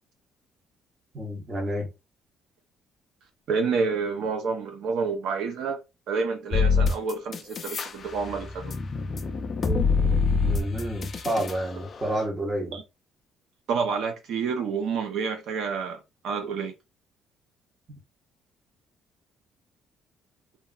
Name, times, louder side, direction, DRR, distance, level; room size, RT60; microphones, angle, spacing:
voice 1, 1.1-1.9 10.4-12.8, right 1 dB, 20° right, 0.8 m, -29 dB
voice 2, 3.5-5.8 6.1-8.7 12.7-12.8 13.7-16.0 16.2-16.7, right 5 dB, 65° right, 0.5 m, -28 dB
sound 1, 6.5-7.9 8.3-11.6, left 4 dB, 30° left, 0.3 m, -25 dB
2.9 x 2.4 x 2.3 m
cardioid pair, 175°, 0 cm